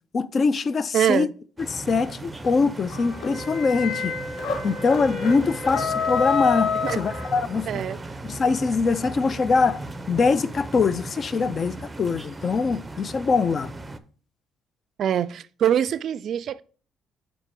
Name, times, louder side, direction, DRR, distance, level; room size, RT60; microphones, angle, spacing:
voice 1, 0.1-1.3 1.7-4.2 4.6-7.7 8.2-13.7, left 4 dB, 40° left, 0.4 m, -23 dB
voice 2, 0.9-1.3 6.8-7.3 7.7-8.0 15.0-16.6, right 9 dB, 60° right, 0.3 m, -24 dB
sound 1, 1.6-14.0, right 2 dB, 15° right, 0.6 m, -37 dB
sound 2, 2.9-7.7, left 5 dB, 65° left, 1.4 m, -28 dB
5.2 x 4.6 x 5.8 m
cardioid pair, 95°, 0 cm